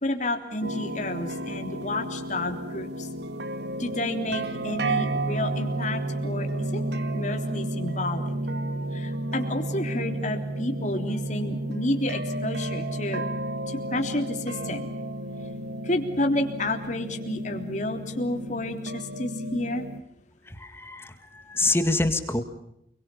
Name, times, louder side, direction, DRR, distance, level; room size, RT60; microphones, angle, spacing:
voice 1, 0.0-3.1 3.8-6.5 6.7-6.8 7.1-8.3 8.9-13.2 13.7-14.9 15.8-19.9, left 1 dB, 45° left, 5 dB, 3.6 m, -30 dB
sound 1, 0.6-20.0, right 1 dB, 70° right, 2.1 m, -32 dB
voice 2, 20.5-22.4, left 2 dB, 15° left, 8 dB, 2.1 m, -26 dB
28.5 x 23.0 x 7.2 m, 0.78 s
head